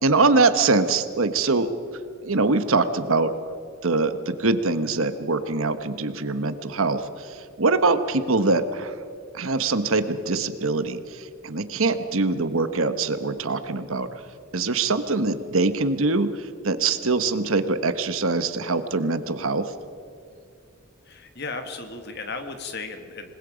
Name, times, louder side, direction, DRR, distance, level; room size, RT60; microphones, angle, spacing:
voice 1, 0.0-1.7 2.2-3.3 3.8-7.3 7.6-8.9 9.3-14.1 14.5-19.7, right 3 dB, 70° right, 11 dB, 1.2 m, -23 dB
voice 2, 21.1-23.3, left 3 dB, 50° left, 6 dB, 1.8 m, -35 dB
27.0 x 20.5 x 5.1 m, 2.5 s
head